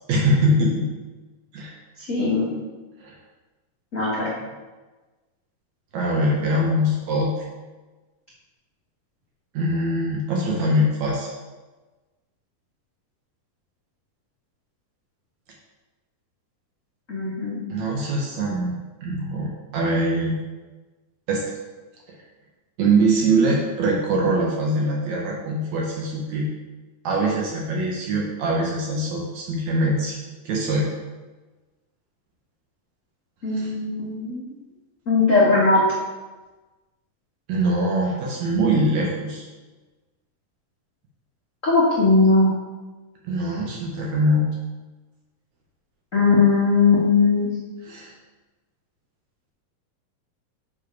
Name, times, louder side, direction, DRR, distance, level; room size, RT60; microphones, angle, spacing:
voice 1, 0.1-0.9 1.5-1.8 3.0-3.1 5.9-7.3 9.5-11.3 17.7-20.4 21.3-21.5 22.8-26.5 27.0-30.2 30.5-30.9 33.5-33.7 37.5-39.5 43.2-44.6 47.9-48.1, right 1 dB, 70° right, -2 dB, 1.9 m, -23 dB
voice 2, 2.1-2.5 3.9-4.3 17.1-17.6 33.4-34.5 35.1-35.8 41.6-42.5 46.1-47.5, left 3 dB, 50° left, -8 dB, 0.9 m, -19 dB
7.4 x 4.7 x 4.7 m, 1.2 s
omnidirectional pair, 4.0 m